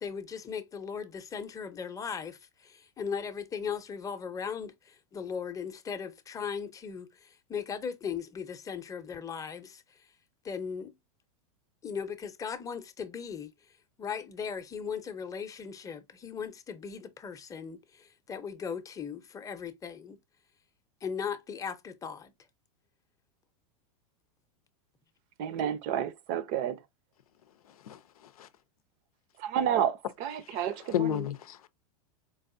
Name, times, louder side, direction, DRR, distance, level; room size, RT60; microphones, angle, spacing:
voice 1, 0.0-9.8 10.4-10.9 11.8-13.5 14.0-20.2 21.0-22.3, left 6 dB, 20° left, 0.7 m, -38 dB
voice 2, 25.4-26.8 29.4-31.2, right 9 dB, 50° right, 0.6 m, -30 dB
voice 3, 27.8-28.5 30.9-31.7, left 10 dB, 90° left, 0.6 m, -32 dB
4.6 x 2.5 x 2.5 m
hypercardioid pair, 120°, 18 cm